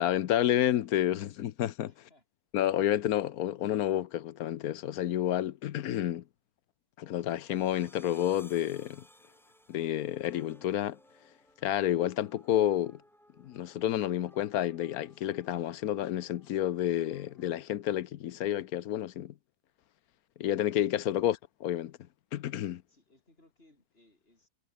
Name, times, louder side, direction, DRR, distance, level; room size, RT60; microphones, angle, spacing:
voice 1, 0.0-1.9 2.5-6.2 7.0-9.0 9.7-11.0 11.6-13.0 13.4-19.3 20.4-22.0 22.3-22.8, left 12 dB, 75° left, 1.2 m, -30 dB
voice 2, 1.8-2.2 21.1-21.2 22.9-24.5, left 1 dB, 40° left, 7.6 m, -64 dB
sound 1, 7.0-17.6, equal, ahead, 2.6 m, -61 dB
omnidirectional pair, 1.6 m